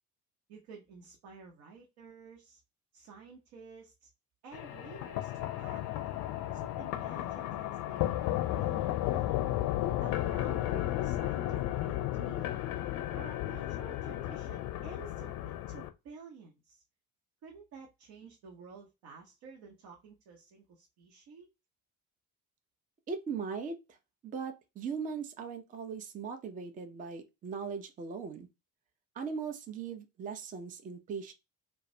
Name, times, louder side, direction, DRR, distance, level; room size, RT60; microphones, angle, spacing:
voice 1, 0.5-2.6 2.9-4.1 4.4-5.8 6.5-9.4 10.0-12.6 13.1-16.8 17.4-21.5, right 5 dB, 55° right, 0.7 m, -52 dB
sound 1, 4.5-15.9, left 14 dB, 50° left, 0.5 m, -34 dB
voice 2, 23.1-23.8 24.2-28.5 29.2-31.3, right 5 dB, 20° right, 0.4 m, -39 dB
2.2 x 2.1 x 2.6 m
figure-of-eight pair, 50°, 45 cm